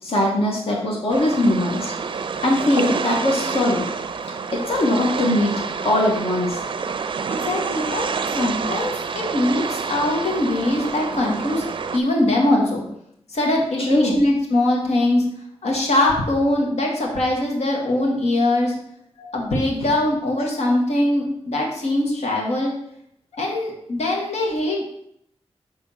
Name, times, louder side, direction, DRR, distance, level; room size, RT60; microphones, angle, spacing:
voice 1, 0.0-3.9 4.5-5.5 5.8-6.6 13.8-14.2 19.2-19.3, left 1 dB, 60° left, -2 dB, 1.2 m, -21 dB
sound 1, 1.1-12.0, right 5 dB, 50° right, 0.4 m, -28 dB
voice 2, 7.3-11.6 11.9-12.8 13.3-15.2 15.6-18.7 19.3-22.7 23.4-24.8, left 1 dB, 85° left, -1 dB, 1.4 m, -22 dB
6.1 x 3.4 x 5.5 m, 0.74 s
wide cardioid pair, 170°, 11 cm